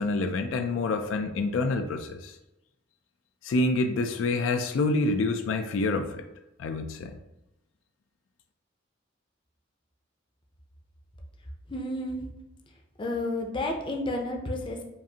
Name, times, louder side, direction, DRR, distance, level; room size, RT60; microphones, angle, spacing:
voice 1, 0.0-2.4 3.4-6.2 6.6-7.1, left 2 dB, 75° left, 6 dB, 0.3 m, -27 dB
voice 2, 11.7-12.3 13.0-14.8, left 1 dB, 25° left, 1 dB, 0.5 m, -31 dB
5.1 x 2.5 x 2.7 m, 0.93 s
head